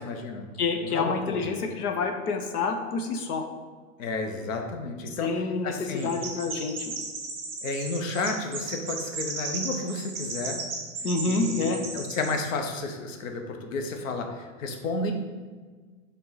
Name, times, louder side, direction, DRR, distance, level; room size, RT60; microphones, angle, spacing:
voice 1, 0.0-0.5 0.8-1.5 4.0-5.3 5.6-6.1 7.6-10.6 11.2-15.1, left 3 dB, 60° left, 4 dB, 0.9 m, -32 dB
voice 2, 0.6-3.5 5.1-7.0 11.0-11.8, left 4 dB, 90° left, 5 dB, 0.9 m, -28 dB
Chirp tweet, 6.0-12.5, right 4 dB, 5° right, 0.5 m, -35 dB
6.8 x 3.7 x 4.0 m, 1.5 s
supercardioid pair, 165°, 44 cm